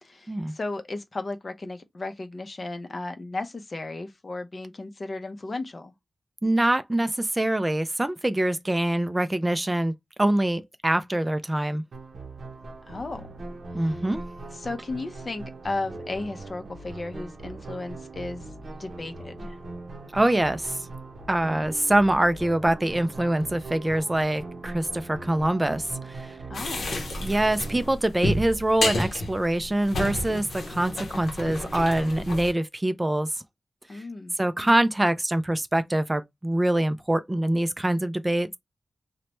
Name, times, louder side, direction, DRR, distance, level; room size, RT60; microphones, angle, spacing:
voice 1, 0.0-5.9 12.9-13.3 13.8-14.0 14.5-18.5 18.8-19.6 26.5-26.9 33.9-34.3, left 2 dB, 45° left, 0.5 m, -35 dB
voice 2, 6.4-11.8 13.7-14.2 20.1-20.8 21.3-26.4 27.2-33.3 34.4-38.5, right 1 dB, 20° right, 0.3 m, -24 dB
sound 1, 11.9-27.9, right 3 dB, 80° right, 0.6 m, -40 dB
sound 2, 26.5-32.5, left 2 dB, 80° left, 0.7 m, -31 dB
3.0 x 2.1 x 2.9 m
wide cardioid pair, 75°, 0 cm